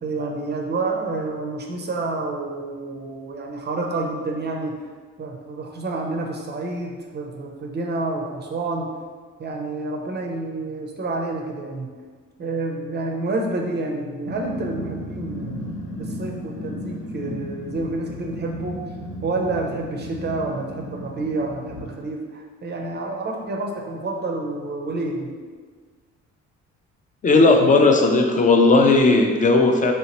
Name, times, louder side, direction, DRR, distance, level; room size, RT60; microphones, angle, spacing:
voice 1, 0.0-4.8 5.2-8.9 9.4-12.0 12.4-15.7 16.0-18.8 19.2-25.4, right 2 dB, 35° right, 1 dB, 0.4 m, -29 dB
Growling, 14.2-21.9, equal, 75° left, 0.7 m, -34 dB
voice 2, 27.2-29.9, left 3 dB, 25° left, 3 dB, 0.4 m, -16 dB
3.2 x 2.8 x 2.9 m, 1.5 s
cardioid pair, 90°, 30 cm